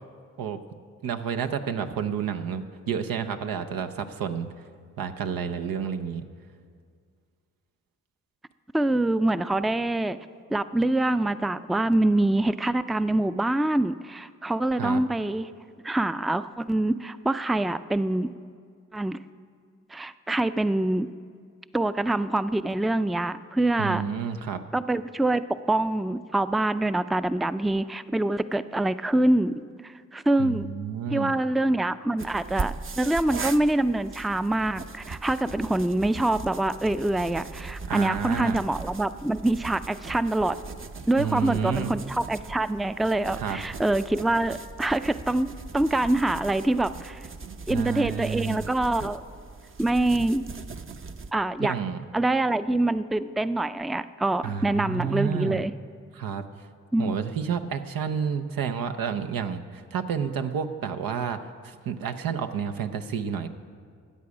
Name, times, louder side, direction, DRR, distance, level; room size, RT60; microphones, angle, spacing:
voice 1, 1.0-4.5 5.0-6.2 14.8-15.0 23.8-24.6 30.4-31.3 37.9-38.6 41.2-41.9 43.3-43.6 47.4-48.6 51.6-52.0 54.4-55.6 56.1-56.5 57.0-63.5, right 7 dB, 85° right, 8 dB, 0.7 m, -30 dB
voice 2, 8.7-10.2 10.5-15.5 15.8-18.3 18.9-19.2 19.9-21.1 21.7-24.0 24.7-25.4 25.7-30.7 31.1-40.6 41.1-47.2 47.7-49.2 49.8-50.4 51.3-51.7 52.1-55.7 56.9-57.1, right 2 dB, ahead, 13 dB, 0.4 m, -25 dB
sound 1, 32.2-51.3, right 4 dB, 40° right, 0.7 m, -39 dB
13.5 x 8.5 x 6.2 m, 2.1 s
supercardioid pair, 45°, 33 cm